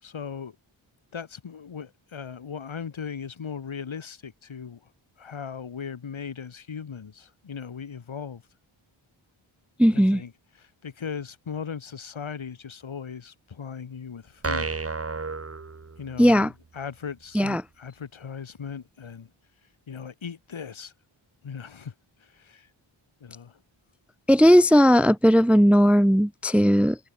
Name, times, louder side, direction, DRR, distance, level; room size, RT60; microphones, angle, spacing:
voice 1, 0.0-0.6 1.1-4.8 5.2-8.4 9.9-10.3 10.6-14.8 16.0-19.3 19.9-20.9 21.4-21.9 22.2-22.7 23.2-23.6, left 6 dB, 75° left, 3.6 m, -38 dB
voice 2, 9.8-10.2 16.2-16.5 17.3-17.6 24.3-27.0, equal, 5° right, 0.5 m, -17 dB
sound 1, 14.4-16.4, right 4 dB, 30° right, 1.5 m, -31 dB
wide cardioid pair, 90°, 48 cm